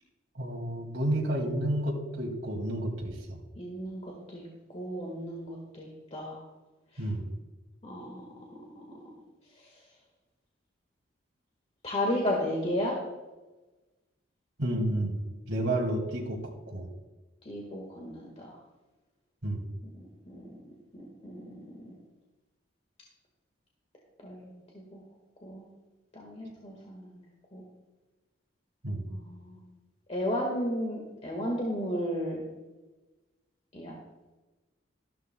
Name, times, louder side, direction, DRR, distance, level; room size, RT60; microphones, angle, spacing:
voice 1, 0.4-3.4 7.0-7.3 14.6-15.2 15.5-16.4 16.7-16.9 19.4-19.6 28.8-29.0, right 1 dB, 70° right, -1 dB, 2.3 m, -30 dB
voice 2, 3.5-4.4 4.7-6.4 6.9-7.0 7.8-8.3 8.7-8.8 9.6-9.7 11.8-13.0 17.4-18.6 20.3-22.0 24.2-25.0 25.4-25.7 26.1-27.2 27.5-27.6 29.1-29.6 30.1-32.4 33.7-34.0, equal, 35° left, -1 dB, 1.6 m, -34 dB
13.5 x 12.0 x 2.3 m, 1.2 s
head